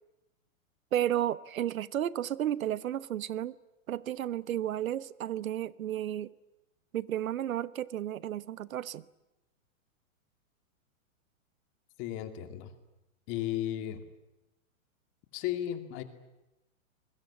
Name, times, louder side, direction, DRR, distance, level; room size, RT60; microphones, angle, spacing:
voice 1, 0.9-3.5 3.9-6.3 6.9-9.0, right 11 dB, 85° right, 1.1 m, -32 dB
voice 2, 12.0-12.7 13.3-14.0 15.3-16.0, left 12 dB, 30° left, 2.5 m, -34 dB
25.5 x 22.0 x 10.0 m
hypercardioid pair, 155°, 40 cm